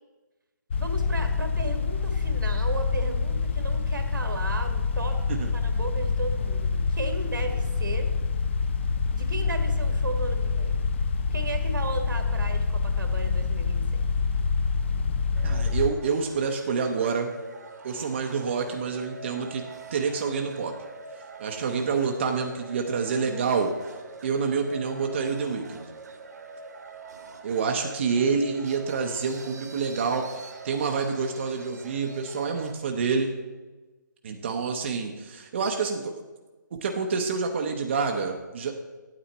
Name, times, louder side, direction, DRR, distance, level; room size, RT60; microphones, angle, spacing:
sound 1, 0.7-15.9, left 4 dB, 35° left, 0.5 m, -26 dB
voice 1, 0.7-8.1 9.1-10.9 11.3-14.1, right 3 dB, 85° right, 6 dB, 1.7 m, -35 dB
sound 2, 15.3-32.7, right 4 dB, 60° right, 1.2 m, -44 dB
voice 2, 15.4-17.3 17.8-19.6 19.9-20.7 21.4-23.7 24.2-25.8 27.4-33.3 34.2-36.2 36.8-38.8, right 5 dB, 35° right, 3 dB, 0.7 m, -27 dB
9.0 x 8.6 x 4.1 m, 1.2 s
hypercardioid pair, 160°, 11 cm